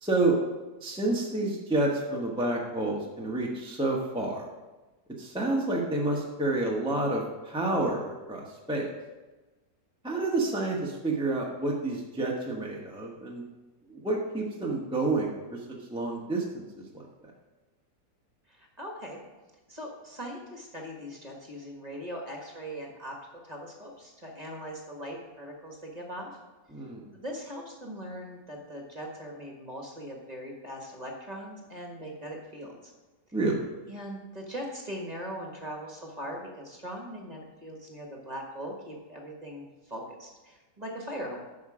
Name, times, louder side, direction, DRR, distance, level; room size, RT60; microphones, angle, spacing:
voice 1, 0.0-0.4 0.8-4.4 5.2-8.9 10.0-13.4 13.9-17.1 26.7-27.0 33.3-33.6, right 2 dB, 5° right, -3 dB, 0.8 m, -29 dB
voice 2, 18.5-19.2 19.7-23.1 23.4-26.3 27.1-32.9 33.9-41.4, equal, 25° right, 0 dB, 1.3 m, -40 dB
9.3 x 6.0 x 4.9 m, 1.2 s
omnidirectional pair, 1.9 m